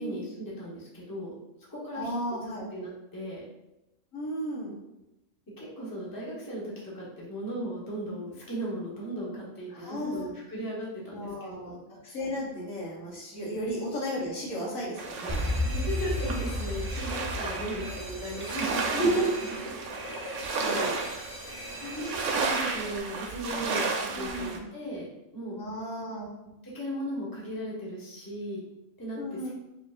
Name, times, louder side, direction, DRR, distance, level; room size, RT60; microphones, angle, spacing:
voice 1, 0.0-1.3 1.7-2.1 2.7-3.4 5.6-11.8 13.5-13.6 15.6-19.2 19.6-19.7 20.1-20.3 21.7-25.6 26.6-28.6 29.0-29.5, right 1 dB, 15° left, -6 dB, 1.0 m, -37 dB
voice 2, 1.9-2.7 4.1-4.8 9.7-10.3 11.1-15.6 17.6-17.9 18.9-19.3 20.0-21.0 24.1-24.7 25.6-26.3 29.2-29.5, right 1 dB, 80° left, -4 dB, 1.5 m, -33 dB
sound 1, 15.0-24.6, right 4 dB, 70° right, 0.9 m, -33 dB
Alarm, 15.3-23.0, left 1 dB, 20° right, 0.4 m, -35 dB
4.9 x 2.9 x 2.5 m, 0.94 s
omnidirectional pair, 1.4 m